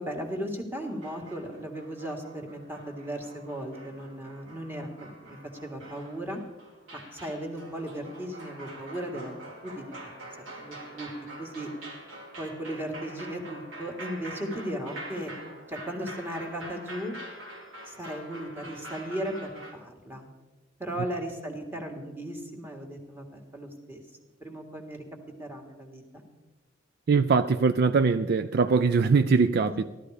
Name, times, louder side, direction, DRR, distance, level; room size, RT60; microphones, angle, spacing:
voice 1, 0.0-6.4 6.9-9.4 9.6-10.0 10.4-11.1 11.4-11.7 12.4-15.3 15.7-17.1 17.9-20.3 20.8-24.0 24.4-25.0 25.4-26.2 29.7-29.9, right 1 dB, 10° right, 1.8 m, -36 dB
sound 1, 0.8-19.7, right 1 dB, 85° right, 3.3 m, -45 dB
voice 2, 27.1-29.9, right 4 dB, 50° right, 0.4 m, -22 dB
15.5 x 12.5 x 5.0 m
head